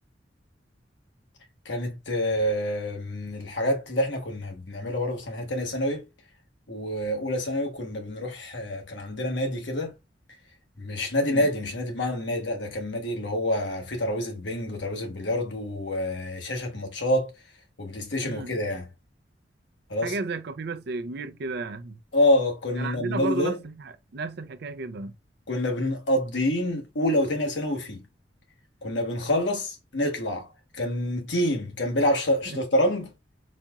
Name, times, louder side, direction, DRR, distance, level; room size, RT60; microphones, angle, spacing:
voice 1, 1.6-6.1 6.7-9.9 10.8-17.3 17.8-18.8 19.9-20.1 22.1-23.6 25.5-28.0 28.8-30.5 30.8-33.1, left 1 dB, 85° left, 1.2 m, -27 dB
voice 2, 18.2-18.5 20.0-22.0 22.7-25.1 32.5-32.6, right 3 dB, 65° right, 0.5 m, -33 dB
4.1 x 2.3 x 2.8 m
head